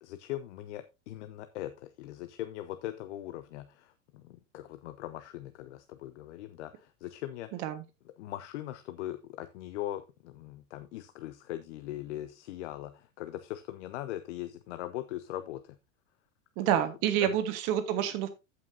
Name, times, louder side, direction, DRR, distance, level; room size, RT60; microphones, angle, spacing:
voice 1, 0.0-7.6 8.2-15.8 17.2-17.3, left 14 dB, 60° left, 10 dB, 0.8 m, -40 dB
voice 2, 16.6-18.3, right 10 dB, 50° right, 9 dB, 1.4 m, -28 dB
15.5 x 5.8 x 2.7 m, 0.26 s
hypercardioid pair, 95°, 39 cm